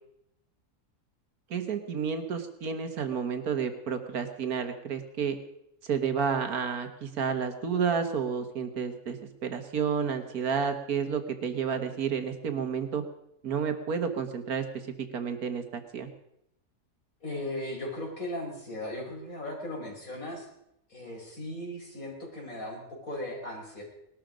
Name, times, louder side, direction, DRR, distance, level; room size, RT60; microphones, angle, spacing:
voice 1, 1.5-5.4 5.8-13.0 13.4-14.7 15.1-16.1, right 6 dB, 80° right, 8 dB, 1.8 m, -30 dB
voice 2, 17.2-20.5 20.9-23.8, left 1 dB, 65° left, -1 dB, 5.2 m, -37 dB
19.5 x 12.5 x 5.1 m, 0.79 s
omnidirectional pair, 1.6 m